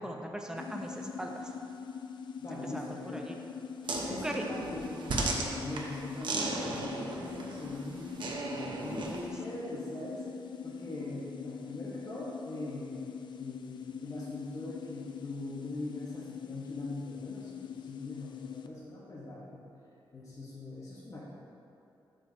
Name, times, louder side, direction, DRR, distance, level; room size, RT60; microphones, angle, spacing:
voice 1, 0.0-1.5 2.7-3.4 4.2-4.5, right 1 dB, 10° right, 1 dB, 0.6 m, -39 dB
sound 1, 0.6-18.7, left 7 dB, 65° left, 0.4 m, -43 dB
voice 2, 2.4-3.4 4.0-8.5 8.8-10.2 10.6-19.6 20.1-21.2, left 1 dB, 40° left, -7 dB, 1.0 m, -42 dB
sound 2, 3.8-9.3, right 2 dB, 65° right, 0.9 m, -36 dB
13.5 x 5.1 x 2.7 m, 2.7 s
wide cardioid pair, 150°, 9 cm